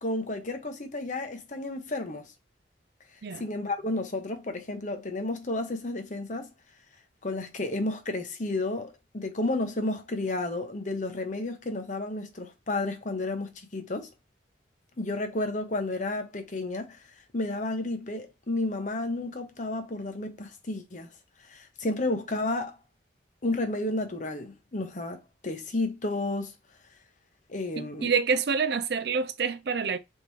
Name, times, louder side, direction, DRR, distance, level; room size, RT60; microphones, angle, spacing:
voice 1, 0.0-2.3 3.4-6.5 7.2-14.1 15.0-17.0 17.3-21.1 21.5-22.8 23.4-26.5 27.5-28.1, left 2 dB, 40° left, 0.9 m, -32 dB
voice 2, 27.8-30.0, right 5 dB, 60° right, 0.5 m, -27 dB
4.1 x 3.6 x 3.1 m
head